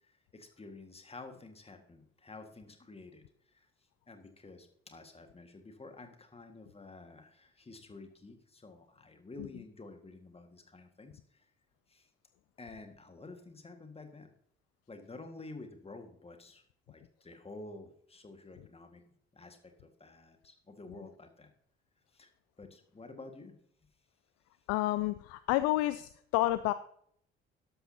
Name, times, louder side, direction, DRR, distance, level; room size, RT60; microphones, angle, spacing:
voice 1, 0.0-3.2 3.5-3.7 4.1-11.5 11.9-12.1 12.6-14.3 14.9-19.0 19.3-21.5 22.1-22.3 22.6-23.6, left 3 dB, 20° left, 6 dB, 1.8 m, -50 dB
voice 2, 24.7-26.7, left 16 dB, 50° left, 14 dB, 0.5 m, -29 dB
12.0 x 11.5 x 2.8 m, 0.65 s
figure-of-eight pair, 50°, 32 cm